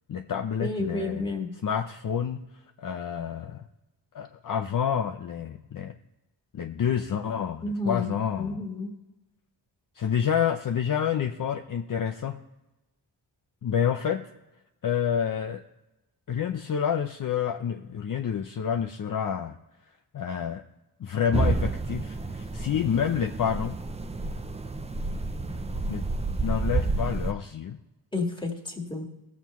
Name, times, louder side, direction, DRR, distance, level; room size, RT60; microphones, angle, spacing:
voice 1, 0.1-1.3 1.6-2.5 2.8-3.7 4.1-5.9 6.5-8.6 10.0-12.4 13.6-14.3 14.8-15.6 16.3-19.6 20.1-20.6 21.0-23.8 25.9-26.0 26.4-27.8, left 8 dB, 50° left, 5 dB, 0.6 m, -28 dB
voice 2, 0.6-1.5 7.6-8.1 8.4-8.9 28.1-29.0, left 3 dB, 10° left, 1 dB, 1.8 m, -30 dB
sound 1, 21.3-27.3, right 3 dB, 15° right, 0.4 m, -30 dB
16.5 x 7.2 x 3.1 m, 1.0 s
wide cardioid pair, 95°, 43 cm